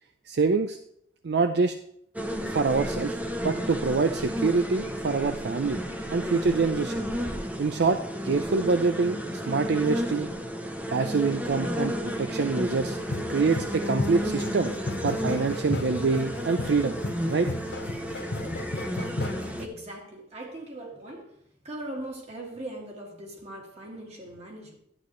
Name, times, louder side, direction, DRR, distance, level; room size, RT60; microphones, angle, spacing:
voice 1, 0.2-0.8 1.2-1.8 2.4-3.2 3.4-5.8 6.1-7.0 7.6-8.0 8.2-10.3 10.9-13.0 13.3-17.0 17.3-17.5, right 4 dB, 65° right, 8 dB, 0.5 m, -25 dB
sound 1, 2.1-19.6, equal, 10° right, 0.8 m, -32 dB
sound 2, 12.8-19.7, left 2 dB, 70° left, 0.9 m, -35 dB
voice 2, 19.6-21.3 21.6-24.8, right 1 dB, 40° right, 0 dB, 2.2 m, -40 dB
11.5 x 8.5 x 3.2 m, 0.70 s
head